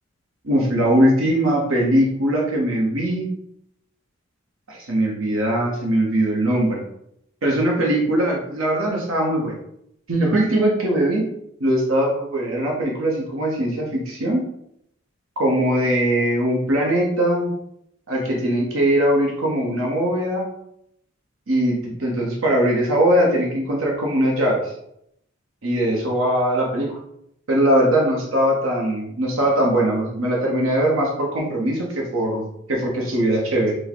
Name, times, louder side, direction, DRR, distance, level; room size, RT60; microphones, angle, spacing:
voice 1, 0.4-3.3 4.7-6.8 7.4-9.6 10.1-11.2 11.6-14.4 15.4-17.5 18.1-20.5 21.5-24.7 25.6-26.9 27.5-33.7, right 1 dB, 80° right, -1 dB, 1.0 m, -21 dB
4.6 x 2.2 x 4.4 m, 0.76 s
head